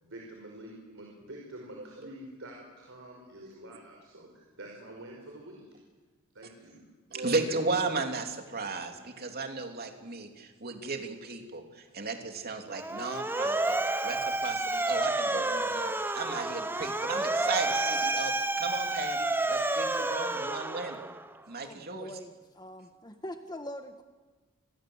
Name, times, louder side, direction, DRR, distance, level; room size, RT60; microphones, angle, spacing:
voice 1, 0.0-5.6 6.3-6.8, right 1 dB, 65° right, -1 dB, 5.4 m, -47 dB
voice 2, 7.1-13.7 14.0-21.0 21.5-22.1, right 3 dB, 45° right, 4 dB, 3.1 m, -35 dB
Motor vehicle (road) / Siren, 12.7-21.3, right 2 dB, 10° right, 0.9 m, -30 dB
voice 3, 21.6-24.0, left 1 dB, 20° left, 7 dB, 1.3 m, -43 dB
29.5 x 22.0 x 8.0 m, 1.3 s
head